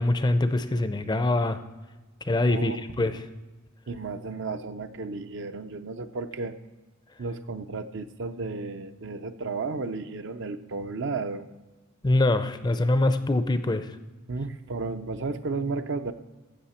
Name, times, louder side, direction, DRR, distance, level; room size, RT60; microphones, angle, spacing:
voice 1, 0.0-1.6 2.2-3.2 12.0-13.9, left 2 dB, 20° left, 11 dB, 0.5 m, -24 dB
voice 2, 2.5-2.8 3.9-6.5 7.2-11.5 14.3-16.1, right 3 dB, 60° right, 9 dB, 0.6 m, -33 dB
15.5 x 6.5 x 4.3 m, 1.2 s
head